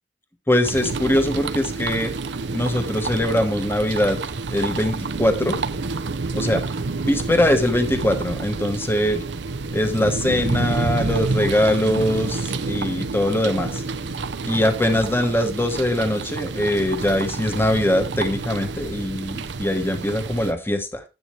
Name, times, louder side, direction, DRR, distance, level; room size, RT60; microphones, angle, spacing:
voice 1, 0.5-2.1 2.5-4.2 4.5-5.5 6.3-6.6 7.0-9.2 9.7-13.8 14.4-21.0, left 1 dB, 15° left, 6 dB, 1.2 m, -22 dB
sound 1, 0.6-20.5, right 3 dB, 75° right, 0.7 m, -28 dB
11.0 x 7.9 x 3.2 m, 0.28 s
head